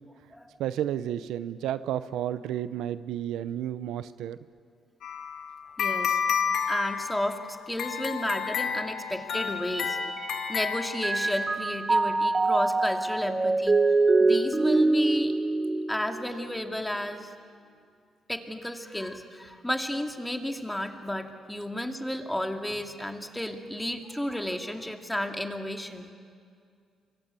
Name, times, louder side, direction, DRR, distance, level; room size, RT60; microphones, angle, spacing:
voice 1, 0.6-4.4, right 11 dB, 85° right, 13 dB, 0.8 m, -31 dB
sound 1, 5.0-11.5, left 7 dB, 75° left, 1.9 m, -31 dB
voice 2, 5.8-6.2 6.7-10.0 10.5-13.8 14.2-15.3 15.9-17.3 18.3-26.1, left 1 dB, 5° left, 4 dB, 2.4 m, -32 dB
Mallet percussion, 9.3-10.7 11.0-16.5, right 3 dB, 20° right, 1.0 m, -25 dB
27.5 x 24.0 x 8.3 m, 2.2 s
cardioid pair, 90°, 0 cm